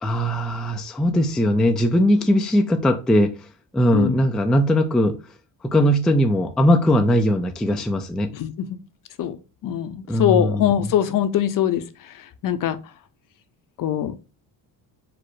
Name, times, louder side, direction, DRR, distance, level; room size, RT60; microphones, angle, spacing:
voice 1, 0.0-3.4 3.7-5.2 5.6-8.3 10.1-10.9, equal, ahead, 0.3 m, -20 dB
voice 2, 8.3-8.7 9.2-9.4 9.6-11.8 12.4-12.8 13.8-14.1, left 10 dB, 50° left, 0.6 m, -22 dB
4.7 x 2.0 x 4.5 m
cardioid pair, 105°, 43 cm